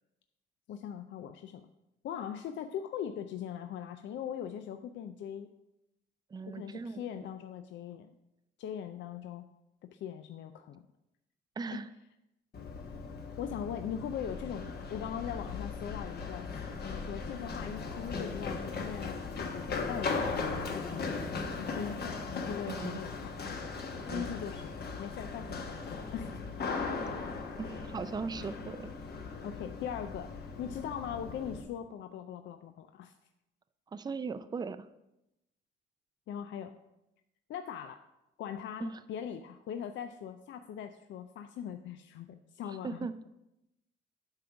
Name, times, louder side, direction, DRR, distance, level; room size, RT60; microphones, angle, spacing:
voice 1, 0.7-1.7 2.0-5.5 6.5-8.1 8.6-9.5 9.9-10.8 11.7-11.8 13.4-23.4 24.1-26.4 29.4-30.3 30.6-33.1 36.3-36.7 37.5-38.0 38.4-43.1, left 9 dB, 70° left, 7 dB, 0.5 m, -40 dB
voice 2, 6.3-7.0 11.6-11.9 22.7-23.0 24.1-24.3 27.6-28.9 33.9-34.9 38.8-39.0 42.7-43.1, right 4 dB, 20° right, 12 dB, 0.4 m, -38 dB
Run, 12.5-31.6, left 4 dB, 55° left, 1.1 m, -38 dB
8.8 x 3.7 x 5.8 m, 0.90 s
cardioid pair, 90°, 20 cm